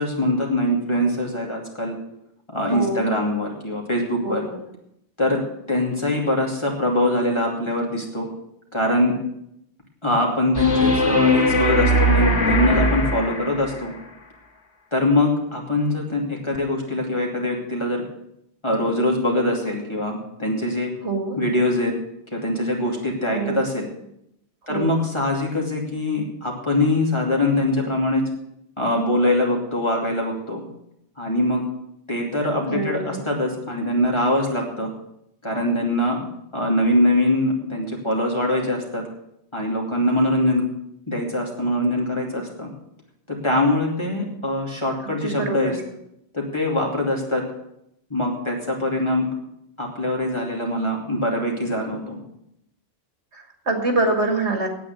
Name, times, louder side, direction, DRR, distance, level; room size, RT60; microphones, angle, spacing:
voice 1, 0.0-1.9 2.5-4.4 5.2-5.4 5.7-8.3 8.7-9.1 10.0-13.9 14.9-18.0 18.6-20.9 21.4-21.9 22.3-23.9 24.7-28.2 28.8-30.6 31.2-31.6 32.1-34.9 35.4-36.2 36.5-39.0 39.5-40.7 41.1-42.7 43.3-45.8 46.3-47.4 48.1-49.2 49.8-52.2, left 1 dB, 25° left, -1 dB, 2.8 m, -23 dB
voice 2, 2.7-3.1 4.2-4.6 21.0-21.4 23.3-23.6 24.7-24.9 32.7-33.2 45.0-45.8 53.3-54.7, right 2 dB, 80° right, 4 dB, 2.5 m, -25 dB
sound 1, 10.5-13.9 16.5-16.6, equal, 80° left, 2.2 m, -20 dB
9.4 x 8.6 x 9.2 m, 0.78 s
omnidirectional pair, 1.1 m